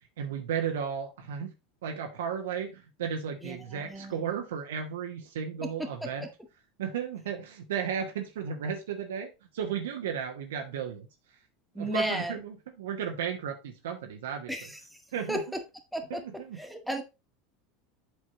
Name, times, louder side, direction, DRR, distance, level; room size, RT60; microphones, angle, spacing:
voice 1, 0.2-1.5 1.8-6.3 6.8-9.3 9.5-11.1 11.8-14.5 15.1-15.4 16.1-16.6, right 7 dB, 70° right, 1.1 m, -34 dB
voice 2, 3.4-4.2 5.8-6.3 11.7-12.3 14.5-14.8 15.3-15.4 15.9-16.2 16.6-17.0, right 1 dB, ahead, 1.7 m, -33 dB
8.0 x 4.2 x 4.0 m
hypercardioid pair, 80°, 0 cm